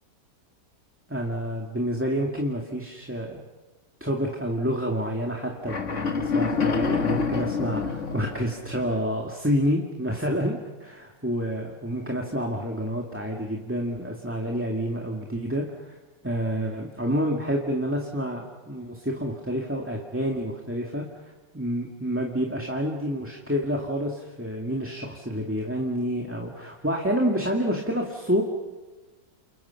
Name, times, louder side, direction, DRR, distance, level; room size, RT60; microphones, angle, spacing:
voice 1, 1.1-3.4 4.0-16.0 16.2-28.4, equal, 5° right, 0 dB, 2.0 m, -28 dB
sound 1, 5.6-8.9, left 5 dB, 45° left, 1.8 m, -27 dB
29.5 x 29.0 x 5.9 m, 1.2 s
omnidirectional pair, 1.9 m